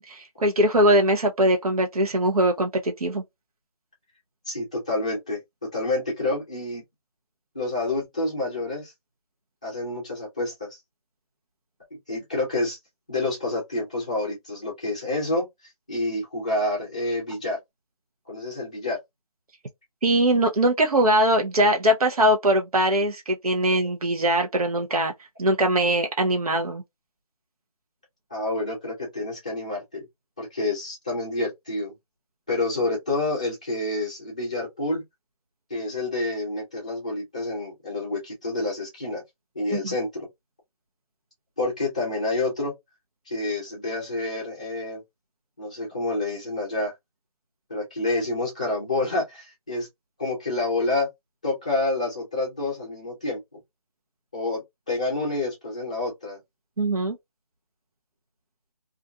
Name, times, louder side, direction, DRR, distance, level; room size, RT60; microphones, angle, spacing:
voice 1, 0.1-3.2 20.0-25.1 25.4-26.8 39.7-39.9 56.8-57.2, right 1 dB, 75° right, 0.8 m, -21 dB
voice 2, 4.5-5.4 5.7-6.8 7.5-8.9 9.6-10.8 12.1-12.8 13.1-15.4 15.9-17.6 18.3-19.0 28.3-30.0 30.4-31.9 32.5-35.0 35.7-39.2 39.5-40.3 41.6-42.7 43.3-45.0 45.6-46.9 47.7-49.9 50.2-51.1 51.4-53.4 54.3-56.4, left 2 dB, 10° left, 0.5 m, -28 dB
2.5 x 2.3 x 2.5 m
figure-of-eight pair, 170°, 19 cm